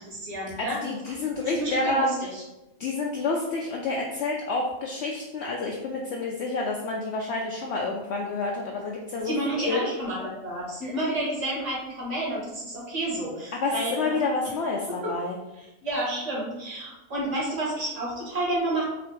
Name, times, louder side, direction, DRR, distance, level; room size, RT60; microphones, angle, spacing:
voice 1, 0.0-0.8 1.5-2.4 9.2-14.2 15.0-15.1 15.5-18.9, right 1 dB, 60° right, -7 dB, 1.9 m, -30 dB
voice 2, 0.6-2.1 2.8-9.9 13.5-15.4, left 3 dB, 65° left, -1 dB, 0.7 m, -29 dB
4.5 x 2.5 x 3.8 m, 0.97 s
omnidirectional pair, 1.4 m